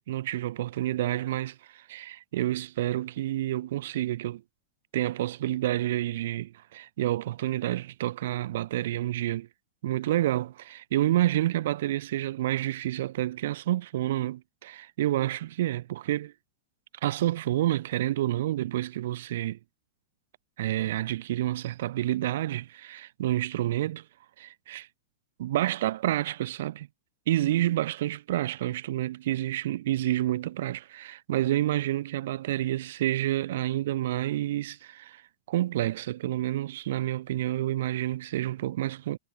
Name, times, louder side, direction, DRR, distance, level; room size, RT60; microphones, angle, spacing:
voice 1, 0.0-4.4 4.9-9.5 9.8-16.3 17.0-19.6 20.6-24.0 24.4-24.9 25.4-26.9 27.3-35.2 35.5-39.2, right 14 dB, 65° right, 0.4 m, -29 dB
supercardioid pair, 150°, 0 cm